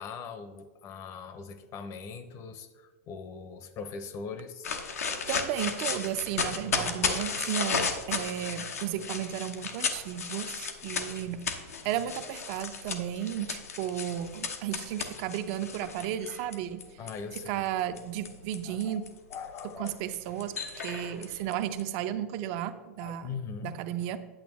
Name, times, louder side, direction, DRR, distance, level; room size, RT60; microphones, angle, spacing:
voice 1, 0.0-4.7 17.0-17.6 18.6-19.0 19.3-20.0 23.0-23.8, left 5 dB, 40° left, 10 dB, 0.8 m, -41 dB
sound 1, 4.6-17.4 18.0-21.8, left 5 dB, 90° left, 0.9 m, -34 dB
voice 2, 5.3-11.4 11.8-16.8 17.5-19.0 19.8-23.3 23.6-24.2, right 10 dB, 50° right, 10 dB, 0.6 m, -34 dB
8.7 x 8.3 x 3.1 m, 1.4 s
hypercardioid pair, 115°, 8 cm